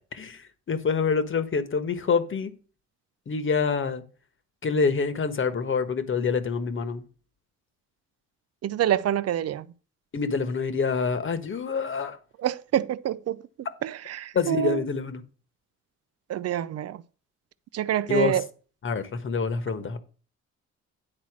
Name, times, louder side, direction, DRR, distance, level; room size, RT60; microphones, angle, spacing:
voice 1, 0.1-2.5 3.3-4.0 4.6-7.1 10.1-12.2 14.3-15.2 18.1-18.4 18.8-20.0, left 5 dB, 40° left, 1.4 m, -26 dB
voice 2, 8.6-9.7 12.4-13.4 13.8-14.8 16.3-17.0 17.7-18.4, right 11 dB, 55° right, 0.6 m, -26 dB
9.9 x 4.2 x 6.1 m
cardioid pair, 90°, 30 cm